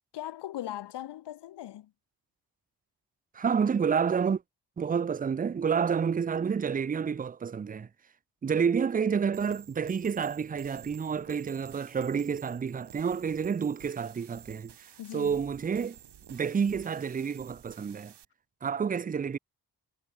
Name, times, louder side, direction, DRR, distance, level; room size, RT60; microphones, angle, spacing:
voice 1, 0.1-1.9 15.0-15.4, left 13 dB, 85° left, 1.1 m, -39 dB
voice 2, 3.3-4.4 4.8-7.9 8.4-14.7 15.1-16.0 16.3-18.1 18.6-19.4, right 6 dB, 20° right, 0.4 m, -29 dB
sound 1, 9.3-18.2, right 9 dB, 85° right, 7.3 m, -52 dB
cardioid pair, 60°, 40 cm